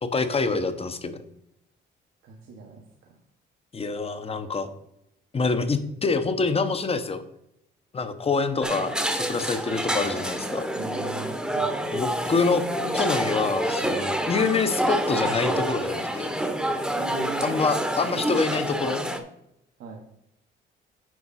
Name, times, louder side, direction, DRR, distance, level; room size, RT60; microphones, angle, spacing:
voice 1, 0.0-1.2 3.7-4.7 5.3-7.2 7.9-10.6 11.9-12.6 12.9-16.3 17.4-19.0, left 4 dB, 30° left, 10 dB, 1.0 m, -26 dB
voice 2, 2.2-2.8 10.7-11.8 17.0-17.6 19.8-20.0, right 5 dB, 85° right, -2 dB, 1.5 m, -38 dB
sound 1, 8.6-19.2, right 1 dB, 5° right, 1.0 m, -28 dB
9.4 x 5.2 x 4.2 m, 0.79 s
cardioid pair, 90°, 20 cm